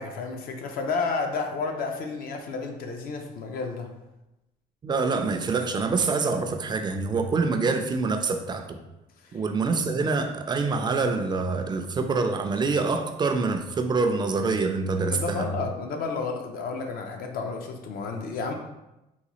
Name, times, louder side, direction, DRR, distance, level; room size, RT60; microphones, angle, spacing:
voice 1, 0.0-3.9 9.2-9.4 15.1-18.5, left 4 dB, 60° left, 3 dB, 0.5 m, -31 dB
voice 2, 4.8-8.8 9.3-15.5, right 4 dB, 25° right, 6 dB, 0.4 m, -26 dB
3.9 x 2.3 x 3.0 m, 0.93 s
cardioid pair, 110°, 17 cm